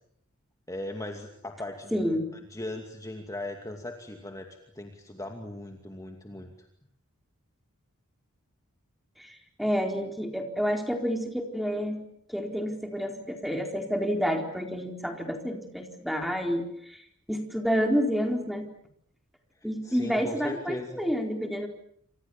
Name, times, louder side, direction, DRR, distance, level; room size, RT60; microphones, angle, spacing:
voice 1, 0.7-1.9 2.5-4.5 4.7-6.7 19.8-21.0, left 1 dB, 15° left, 4 dB, 2.5 m, -38 dB
voice 2, 1.9-2.3 9.2-12.0 12.3-17.0 17.3-18.7 19.6-21.7, equal, ahead, 4 dB, 4.2 m, -29 dB
28.0 x 26.5 x 7.3 m, 0.69 s
head